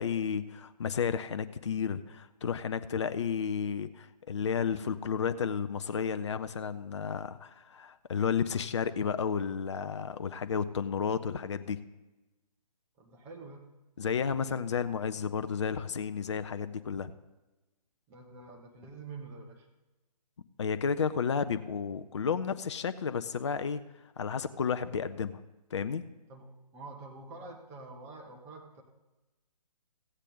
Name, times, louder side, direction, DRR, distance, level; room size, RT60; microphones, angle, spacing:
voice 1, 0.0-11.8 14.0-17.1 20.6-23.8 24.2-25.4 25.7-26.0, left 6 dB, 45° left, 11 dB, 0.4 m, -32 dB
voice 2, 13.0-13.7 18.1-19.7 26.3-28.8, right 3 dB, 10° right, 1 dB, 0.8 m, -47 dB
15.0 x 8.1 x 3.9 m, 1.1 s
figure-of-eight pair, 140°, 21 cm